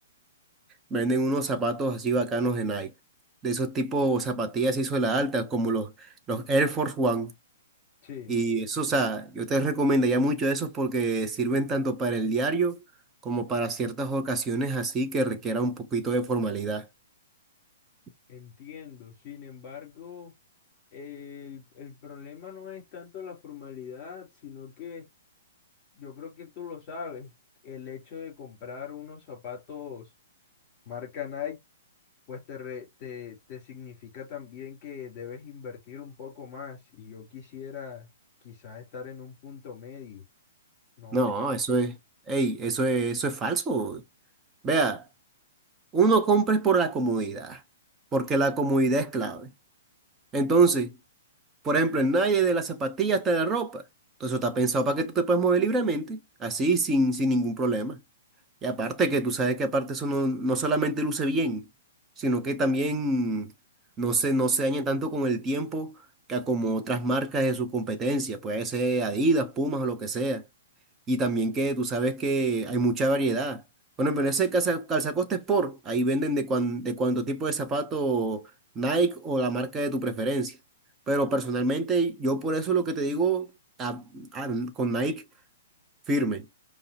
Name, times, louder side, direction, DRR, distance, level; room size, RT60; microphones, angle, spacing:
voice 1, 0.9-2.9 3.4-5.9 6.3-7.3 8.3-12.8 13.2-16.9 41.1-41.9 42.3-44.0 44.6-45.0 45.9-47.6 48.1-49.5 50.3-51.0 51.6-53.8 54.2-58.0 58.6-61.7 62.2-63.5 64.0-66.0 66.3-70.4 71.1-73.6 74.0-78.5 78.8-80.6 81.1-83.5 83.8-85.2 86.1-86.5, right 2 dB, 15° right, 0.6 m, -26 dB
voice 2, 8.0-8.4 18.3-20.3 20.9-25.1 25.9-27.3 27.6-30.1 30.8-31.6 32.3-38.1 38.4-40.2 41.0-41.2 41.7-41.8, left 7 dB, 30° left, 2.8 m, -41 dB
5.2 x 2.0 x 2.7 m
hypercardioid pair, 155°, 0 cm